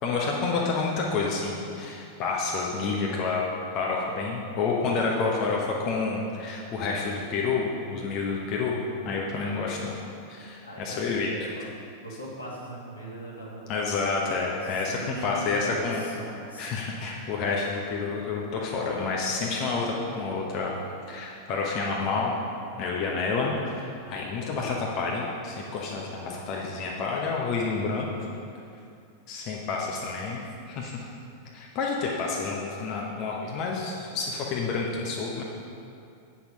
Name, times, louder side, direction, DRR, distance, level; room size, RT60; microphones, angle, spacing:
voice 1, 0.0-3.4 3.7-8.7 9.0-10.0 10.3-11.3 13.7-16.0 16.6-20.8 21.1-22.4 22.8-28.1 29.3-30.4 30.7-31.0 31.5-35.4, left 4 dB, 40° left, -2 dB, 1.0 m, -29 dB
voice 2, 5.1-5.8 10.6-11.7 12.0-16.7, right 1 dB, 80° left, -4 dB, 1.9 m, -41 dB
8.6 x 6.2 x 5.2 m, 2.5 s
figure-of-eight pair, 90°, 0 cm